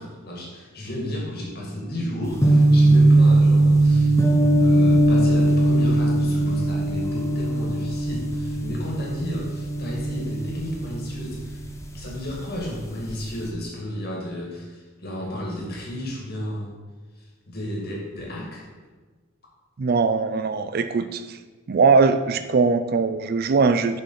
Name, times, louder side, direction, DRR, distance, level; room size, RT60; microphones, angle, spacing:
voice 1, 0.0-4.1 4.6-11.6 11.9-16.8 17.2-18.7, left 1 dB, 45° left, -2 dB, 2.2 m, -33 dB
sound 1, 2.2-12.3 12.6-13.4, right 1 dB, 15° left, 0.6 m, -20 dB
voice 2, 19.8-21.4 21.7-24.0, right 4 dB, 45° right, 11 dB, 0.4 m, -20 dB
7.1 x 5.3 x 5.7 m, 1.3 s
head